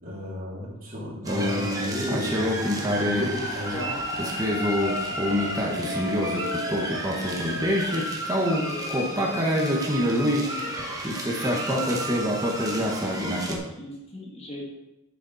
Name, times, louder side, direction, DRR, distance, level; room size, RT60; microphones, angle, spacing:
voice 1, 0.0-3.9 4.6-4.9, equal, 40° right, -6 dB, 3.7 m, -34 dB
sound 1, 1.2-13.6, equal, 15° right, 1.5 m, -26 dB
sound 2, 2.3-8.4, equal, 60° right, 2.4 m, -37 dB
voice 2, 3.7-4.1 5.3-7.1 7.8-11.0 11.4-14.6, left 1 dB, 25° left, -2 dB, 1.7 m, -40 dB
11.5 x 7.0 x 4.3 m, 0.95 s
head